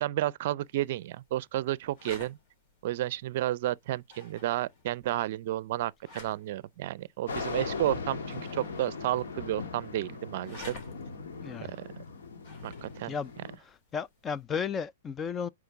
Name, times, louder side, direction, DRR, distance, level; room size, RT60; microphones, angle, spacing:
voice 1, 0.0-2.4 2.8-10.8 11.6-11.9 12.6-13.1, right 14 dB, 55° right, 0.5 m, -32 dB
sound 1, 0.6-14.4, left 3 dB, 50° left, 3.5 m, -53 dB
sound 2, 7.3-13.6, left 4 dB, 75° left, 1.5 m, -39 dB
voice 2, 11.4-11.7 13.1-13.3 13.6-15.5, left 6 dB, 20° left, 0.4 m, -34 dB
7.9 x 4.9 x 3.5 m
hypercardioid pair, 125°, 0 cm